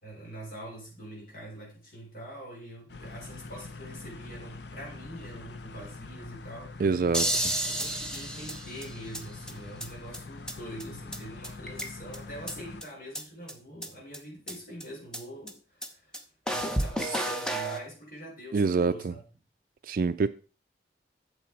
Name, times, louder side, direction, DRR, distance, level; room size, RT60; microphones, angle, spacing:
voice 1, 0.0-6.8 7.4-16.2 16.5-19.2, equal, 55° left, 4.1 m, -44 dB
sound 1, 2.9-12.8, left 3 dB, 75° left, 0.7 m, -44 dB
voice 2, 6.8-7.3 18.5-19.1 19.9-20.3, right 4 dB, 55° right, 0.4 m, -25 dB
sound 2, 7.1-9.2 9.5-9.6 9.8-9.9 10.1-10.2 10.5-10.6 10.8-10.9 11.1-11.2 11.4-12.2 12.5-12.6 12.8-12.9 13.1-13.2 13.5-13.6 13.8-13.9 14.1-14.2 14.5-14.6 14.8-14.9 15.1-15.2 15.5-15.6 15.8-15.9 16.1-16.2 16.5-17.8, right 1 dB, 5° left, 1.0 m, -31 dB
8.8 x 7.0 x 4.6 m
head